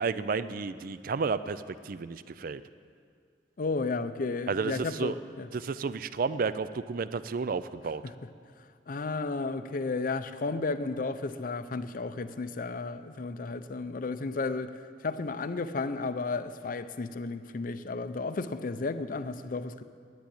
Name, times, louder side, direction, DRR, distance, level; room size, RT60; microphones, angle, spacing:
voice 1, 0.0-2.6 4.5-5.2 5.5-8.0, right 4 dB, 50° right, 14 dB, 0.4 m, -32 dB
voice 2, 3.6-5.5 8.0-8.1 8.9-14.7 15.0-19.8, left 3 dB, 50° left, 12 dB, 0.5 m, -33 dB
10.5 x 9.0 x 8.4 m, 2.2 s
head